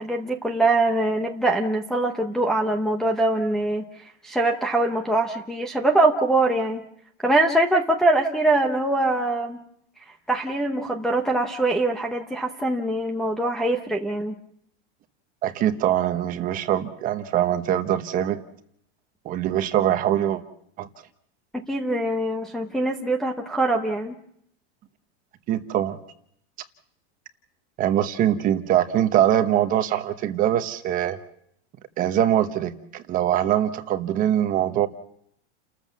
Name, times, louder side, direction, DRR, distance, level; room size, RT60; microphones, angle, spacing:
voice 1, 0.0-3.8 4.2-6.8 7.2-9.6 10.3-14.3 21.5-24.1, right 2 dB, ahead, -1 dB, 0.8 m, -23 dB
voice 2, 15.4-18.4 19.2-20.4 20.8-20.9 25.5-26.0 27.8-31.2 32.0-34.9, right 11 dB, 25° right, 9 dB, 1.1 m, -23 dB
30.0 x 14.0 x 7.2 m, 0.70 s
supercardioid pair, 170°, 35 cm